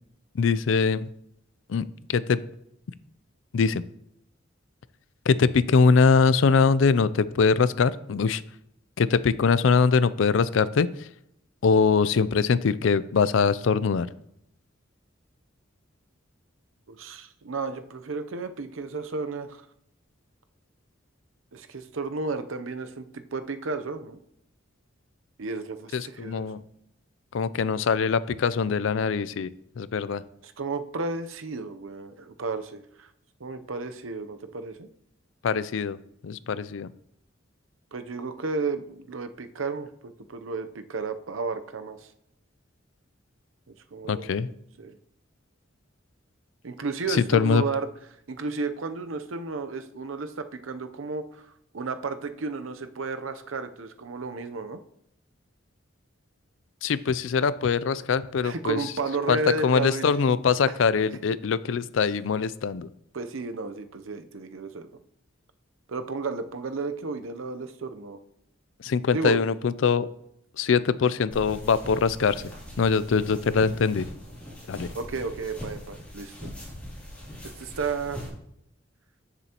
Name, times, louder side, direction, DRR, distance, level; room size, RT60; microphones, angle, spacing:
voice 1, 0.3-1.1 1.7-2.4 3.5-3.8 5.3-8.4 9.0-10.9 11.6-14.1 25.9-26.6 27.3-29.5 29.8-30.2 35.4-36.0 36.2-36.9 44.1-44.5 47.1-47.6 56.8-58.8 59.3-62.9 68.8-70.1 70.6-72.4 72.8-74.1 74.7-74.9, left 5 dB, 70° left, 16 dB, 0.4 m, -22 dB
voice 2, 16.9-19.6 21.5-24.2 25.4-26.5 30.4-33.1 33.4-34.9 37.9-42.1 43.7-44.4 44.8-45.0 46.6-47.9 48.3-51.5 51.7-54.8 58.4-60.2 63.1-64.9 65.9-68.2 69.1-69.4 74.9-76.4 77.6-78.2, right 4 dB, 90° right, 9 dB, 0.7 m, -33 dB
sound 1, 71.3-78.3, equal, 10° left, 2.9 m, -41 dB
13.0 x 7.0 x 2.9 m, 0.77 s
head